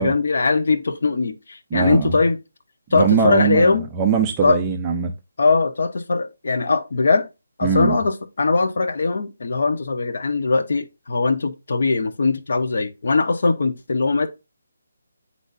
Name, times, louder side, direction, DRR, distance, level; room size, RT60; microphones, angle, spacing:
voice 1, 0.0-2.4 2.9-3.8 4.4-4.6 5.4-7.3 7.6-14.3, left 3 dB, 60° left, 1.0 m, -20 dB
voice 2, 1.7-2.1 2.9-5.1 7.6-8.0, right 6 dB, 15° right, 0.6 m, -21 dB
9.0 x 4.1 x 2.6 m
hypercardioid pair, 170°, 0 cm